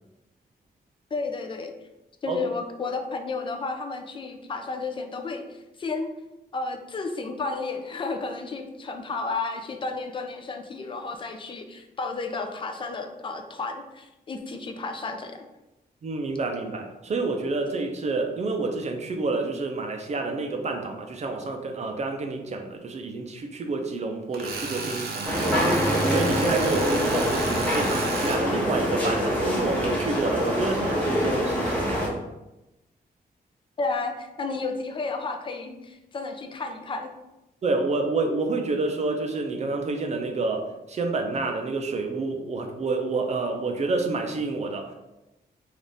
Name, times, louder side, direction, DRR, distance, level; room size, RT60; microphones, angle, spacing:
voice 1, 1.1-1.7 2.2-6.1 6.5-15.5 33.8-37.1, left 3 dB, 30° left, 5 dB, 0.4 m, -32 dB
voice 2, 16.0-25.8 26.1-32.0 37.6-44.9, right 3 dB, 45° right, 3 dB, 0.4 m, -28 dB
Tools, 24.3-28.4, right 4 dB, 90° right, 0.6 m, -33 dB
sound 1, 25.2-32.1, equal, 10° left, 0.8 m, -25 dB
3.4 x 2.4 x 3.9 m, 0.98 s
wide cardioid pair, 165°, 16 cm